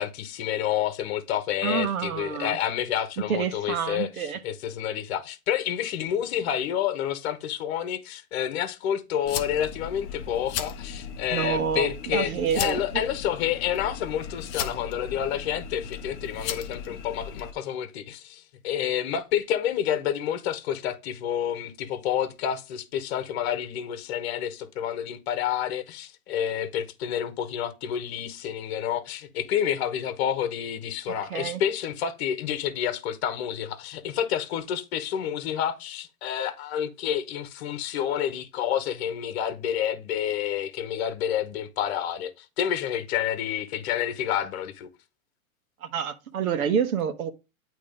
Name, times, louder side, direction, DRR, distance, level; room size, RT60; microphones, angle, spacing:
voice 1, 0.0-12.3 12.6-44.9, left 10 dB, 50° left, 1.1 m, -29 dB
voice 2, 1.6-2.6 3.3-4.4 11.3-13.0 31.3-31.6 45.8-47.3, right 7 dB, 75° right, 1.2 m, -28 dB
sound 1, 9.2-17.5, left 7 dB, 25° left, 0.7 m, -36 dB
8.6 x 3.1 x 5.0 m
hypercardioid pair, 140°, 42 cm